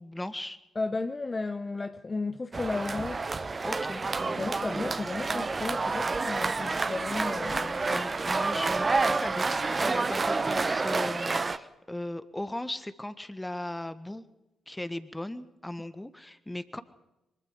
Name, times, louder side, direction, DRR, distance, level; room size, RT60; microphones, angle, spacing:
voice 1, 0.0-0.6 3.6-4.0 7.9-14.2 14.7-16.8, left 1 dB, 10° left, 1.6 m, -37 dB
voice 2, 0.7-3.2 4.2-7.8, left 3 dB, 30° left, 0.8 m, -34 dB
sound 1, 2.5-11.6, right 3 dB, 35° right, 1.1 m, -29 dB
24.0 x 21.5 x 5.2 m
hypercardioid pair, 45°, 0 cm